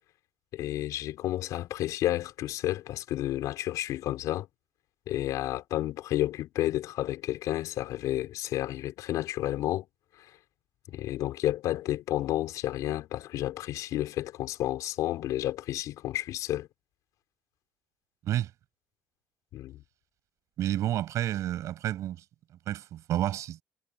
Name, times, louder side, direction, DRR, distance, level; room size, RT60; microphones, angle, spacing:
voice 1, 0.5-4.5 5.1-9.9 10.2-10.3 10.9-16.7 19.5-19.8, left 14 dB, 75° left, 4.7 m, -31 dB
voice 2, 20.6-22.2 22.7-23.6, right 12 dB, 65° right, 7.8 m, -30 dB
cardioid pair, 140°, 6 cm